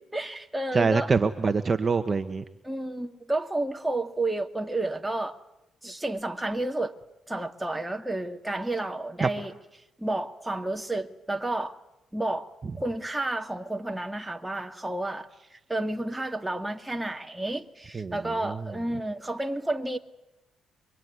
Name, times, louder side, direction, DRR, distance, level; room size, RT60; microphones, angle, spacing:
voice 1, 0.0-1.1 2.6-5.4 5.8-7.0 7.3-9.5 10.0-11.7 12.1-12.5 12.8-15.3 15.7-20.0, right 2 dB, 10° right, 2.2 m, -31 dB
voice 2, 0.7-2.4 9.2-9.3 17.9-18.2 18.4-18.5, right 4 dB, 35° right, 1.2 m, -24 dB
26.0 x 24.0 x 9.6 m
cardioid pair, 90°, 0 cm